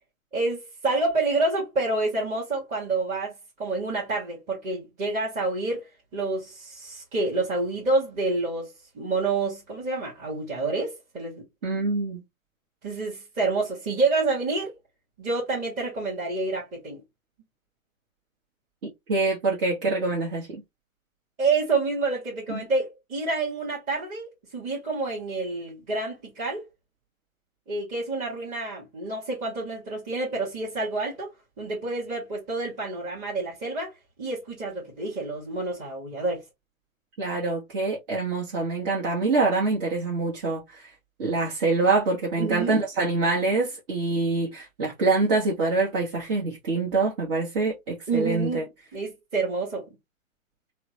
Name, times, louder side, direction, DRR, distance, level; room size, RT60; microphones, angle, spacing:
voice 1, 0.3-11.4 12.8-14.7 15.2-17.0 21.4-26.6 27.7-31.3 31.6-33.9 34.2-36.4 42.4-42.8 48.1-48.6 48.9-49.9, right 3 dB, 20° right, 1.2 m, -28 dB
voice 2, 11.6-12.2 18.8-20.6 22.5-22.6 37.2-40.9 41.2-48.6, right 3 dB, 40° right, 1.2 m, -25 dB
3.4 x 2.2 x 3.0 m
hypercardioid pair, 130°, 41 cm